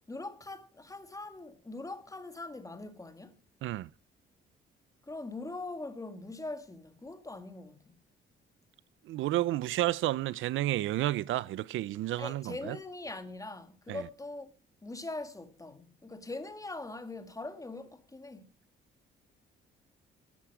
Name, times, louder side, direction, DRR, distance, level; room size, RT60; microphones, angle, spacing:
voice 1, 0.1-3.3 5.1-7.8 12.2-14.5 14.8-18.5, left 2 dB, 15° left, 2.0 m, -42 dB
voice 2, 9.1-12.8 13.9-14.0, right 15 dB, 80° right, 0.6 m, -31 dB
13.5 x 10.0 x 4.9 m
cardioid pair, 90°, 20 cm